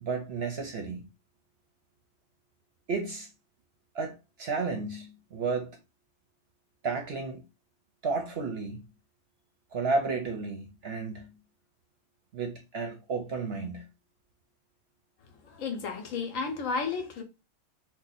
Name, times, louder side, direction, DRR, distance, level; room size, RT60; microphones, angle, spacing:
voice 1, 0.0-1.1 2.9-3.3 3.9-5.8 6.8-7.4 8.0-8.8 9.7-11.3 12.3-13.9, right 4 dB, 55° right, 0.8 m, -32 dB
voice 2, 15.4-17.2, left 5 dB, 65° left, 1.1 m, -32 dB
2.8 x 2.2 x 4.0 m
omnidirectional pair, 1.5 m